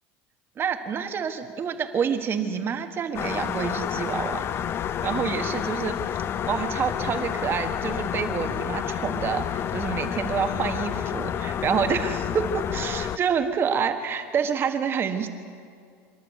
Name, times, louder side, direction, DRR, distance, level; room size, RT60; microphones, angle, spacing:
voice 1, 0.6-4.5 5.0-6.0 6.5-15.3, right 7 dB, 30° right, 7 dB, 1.5 m, -27 dB
sound 1, 3.1-13.2, left 9 dB, 30° left, 0.6 m, -29 dB
26.5 x 12.0 x 8.3 m, 2.2 s
supercardioid pair, 140°, 8 cm